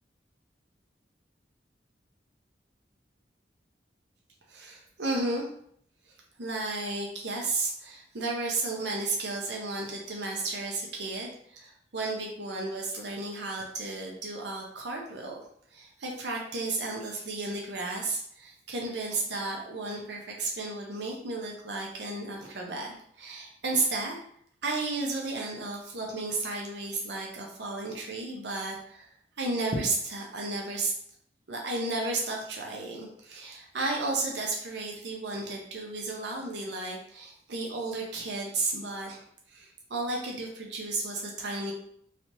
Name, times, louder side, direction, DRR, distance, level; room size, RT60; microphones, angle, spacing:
voice 1, 4.5-5.5 6.1-6.2 6.4-15.4 15.7-24.2 24.6-29.1 29.4-30.9 31.5-41.7, right 2 dB, 75° right, -1 dB, 0.6 m, -33 dB
3.2 x 2.7 x 2.9 m, 0.66 s
head